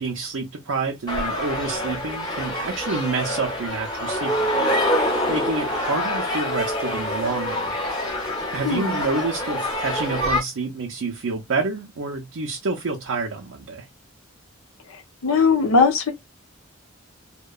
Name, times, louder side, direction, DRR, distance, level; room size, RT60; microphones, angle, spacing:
voice 1, 0.0-4.7 5.3-7.8 8.5-13.9, right 3 dB, 70° right, 0.5 m, -28 dB
sound 1, 1.1-10.4, left 1 dB, 20° left, 0.8 m, -26 dB
voice 2, 8.6-9.0 14.9-16.1, left 4 dB, 90° left, 0.7 m, -20 dB
2.8 x 2.1 x 2.3 m
head